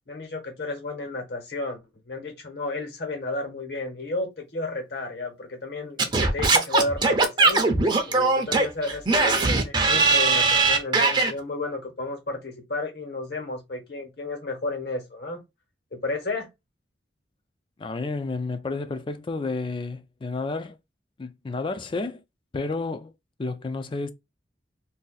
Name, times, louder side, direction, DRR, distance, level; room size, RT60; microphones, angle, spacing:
voice 1, 0.1-1.8 2.0-7.6 8.1-15.4 15.9-16.5, left 2 dB, 65° left, 1.3 m, -32 dB
Singing / Scratching (performance technique), 6.0-11.3, right 3 dB, 25° right, 0.5 m, -20 dB
voice 2, 17.8-20.8 21.2-22.2 22.5-23.1 23.4-24.1, left 3 dB, 30° left, 0.4 m, -31 dB
2.7 x 2.3 x 3.9 m
head